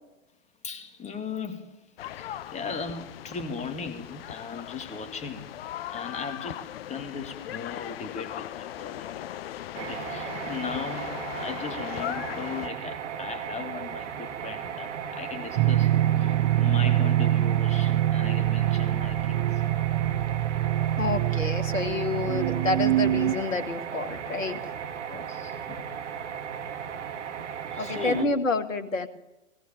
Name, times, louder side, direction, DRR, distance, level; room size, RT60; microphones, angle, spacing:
voice 1, 0.6-5.6 5.9-9.1 9.8-19.6 24.9-25.9 27.7-28.4, left 5 dB, 15° left, 7 dB, 2.0 m, -38 dB
sound 1, 2.0-12.7, left 12 dB, 45° left, 0.8 m, -38 dB
sound 2, 9.7-28.2, right 8 dB, 60° right, 2.1 m, -36 dB
sound 3, 15.6-23.3, right 13 dB, 35° right, 1.0 m, -24 dB
voice 2, 21.0-24.8 27.8-29.1, left 3 dB, 75° left, 9 dB, 2.1 m, -28 dB
21.0 x 18.0 x 9.3 m, 1.0 s
figure-of-eight pair, 105°, 40 cm